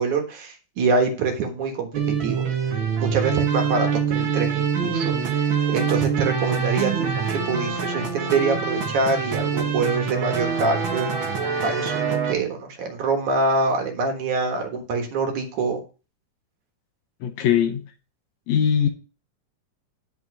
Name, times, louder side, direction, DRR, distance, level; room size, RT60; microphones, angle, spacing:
voice 1, 0.0-1.9 2.2-2.5 3.0-11.2 11.6-15.8, right 3 dB, 70° right, 2.9 m, -25 dB
sound 1, 1.9-12.3, right 6 dB, 50° right, 1.6 m, -25 dB
voice 2, 17.2-17.8 18.5-18.9, left 9 dB, 70° left, 2.2 m, -20 dB
10.5 x 5.6 x 4.8 m
omnidirectional pair, 3.7 m